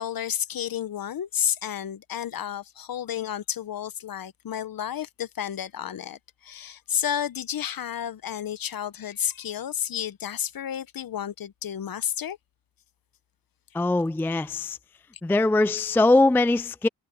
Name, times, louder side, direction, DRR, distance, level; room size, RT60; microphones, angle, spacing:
voice 1, 0.0-12.4, left 9 dB, 50° left, 1.1 m, -31 dB
voice 2, 13.7-14.8 15.2-16.9, left 2 dB, 5° left, 0.4 m, -21 dB
cardioid pair, 85°, 44 cm